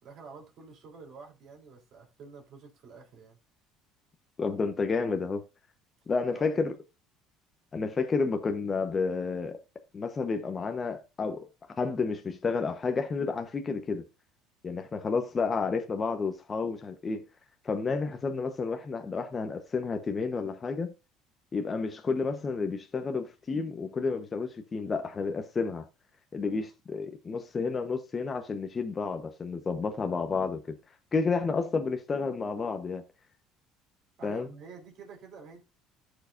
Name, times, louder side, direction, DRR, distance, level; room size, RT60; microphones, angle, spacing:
voice 1, 0.0-3.4 6.3-6.5 34.2-35.6, right 5 dB, 55° right, 3.7 m, -49 dB
voice 2, 4.4-5.4 6.1-6.7 7.7-9.6 9.9-11.5 11.8-14.0 14.6-17.2 17.6-20.9 21.5-25.8 26.3-30.6 31.1-33.0 34.2-34.5, left 4 dB, 30° left, 1.1 m, -30 dB
13.5 x 5.0 x 2.6 m
supercardioid pair, 100°, 0 cm